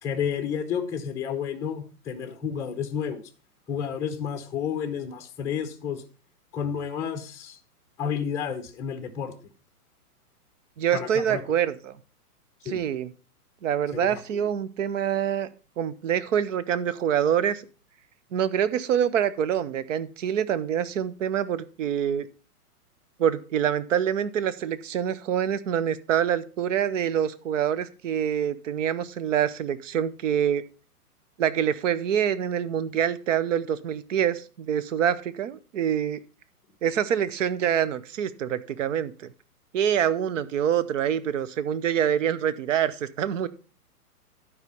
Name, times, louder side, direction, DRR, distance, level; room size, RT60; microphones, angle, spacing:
voice 1, 0.0-3.3 3.7-6.0 6.5-7.6 8.0-9.3 10.9-11.4 12.6-12.8 13.9-14.4, left 7 dB, 5° left, 5 dB, 0.7 m, -31 dB
voice 2, 10.8-12.0 12.6-13.1 13.6-15.5 15.8-17.6 18.3-22.3 23.2-30.6 31.4-36.2 36.8-39.3 39.7-43.5, right 9 dB, 55° right, 15 dB, 0.9 m, -26 dB
11.5 x 4.8 x 5.3 m, 0.36 s
hypercardioid pair, 140°, 46 cm